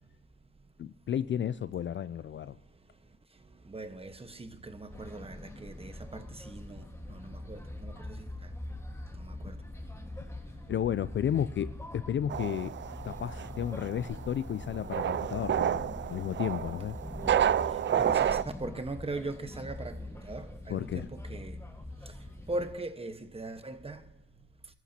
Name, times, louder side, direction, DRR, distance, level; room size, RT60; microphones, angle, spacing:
voice 1, 0.8-2.6 10.7-12.7 13.0-17.0 20.7-21.1, left 9 dB, 40° left, 0.4 m, -33 dB
voice 2, 3.6-8.5 9.1-9.6 17.7-21.6 22.0-22.1 22.5-24.0, right 2 dB, 20° right, 1.3 m, -40 dB
sound 1, 4.9-22.7, left 1 dB, 10° left, 1.6 m, -43 dB
sound 2, 12.3-18.4, right 9 dB, 40° right, 0.5 m, -30 dB
29.5 x 14.0 x 2.9 m
cardioid pair, 90°, 30 cm